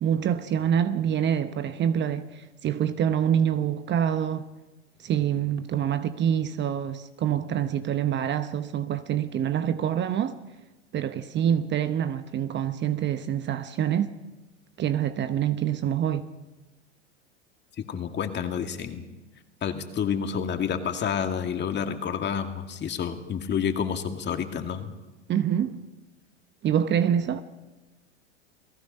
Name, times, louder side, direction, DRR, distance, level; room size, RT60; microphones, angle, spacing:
voice 1, 0.0-4.5 5.0-10.4 10.9-14.1 14.8-16.3 25.3-25.8 26.6-27.4, right 9 dB, 30° right, 1.0 m, -26 dB
voice 2, 17.8-19.0 19.6-24.9, left 7 dB, 30° left, 2.2 m, -29 dB
28.5 x 18.0 x 5.5 m
hypercardioid pair, 100°, 35 cm